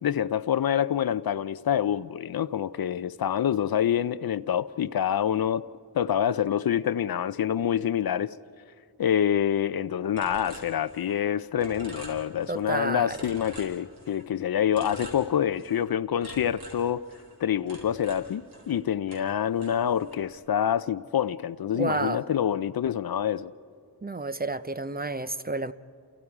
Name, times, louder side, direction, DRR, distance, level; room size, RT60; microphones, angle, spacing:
voice 1, 0.0-5.6 5.9-8.4 9.0-17.0 17.4-23.5, left 9 dB, 60° left, 0.5 m, -26 dB
sound 1, 10.2-11.3 11.6-12.7 13.1-14.3 14.7-15.9 16.2-18.8 19.1-20.3, right 2 dB, 65° right, 4.8 m, -45 dB
voice 2, 12.5-13.2 21.7-22.2 24.0-25.7, right 2 dB, 25° right, 0.5 m, -30 dB
29.5 x 28.5 x 4.8 m
wide cardioid pair, 125°, 41 cm